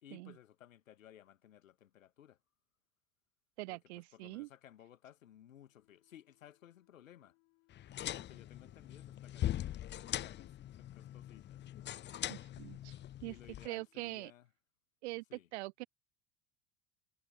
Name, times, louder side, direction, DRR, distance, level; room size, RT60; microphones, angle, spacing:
voice 1, 0.0-2.4 3.7-3.8 4.1-7.4 8.1-11.6 13.2-14.5 15.3-15.5, left 11 dB, 75° left, 1.7 m, -59 dB
voice 2, 3.6-4.5 12.3-12.9 13.2-13.3 13.6-14.3 15.0-15.2 15.5-15.9, right 22 dB, 55° right, 0.5 m, -43 dB
Wind instrument woodwind instrument, 5.7-14.4, left 34 dB, 60° left, 5.4 m, -74 dB
sound 1, 7.7-13.7, left 12 dB, 25° left, 0.7 m, -41 dB
figure-of-eight pair, 70°, 40 cm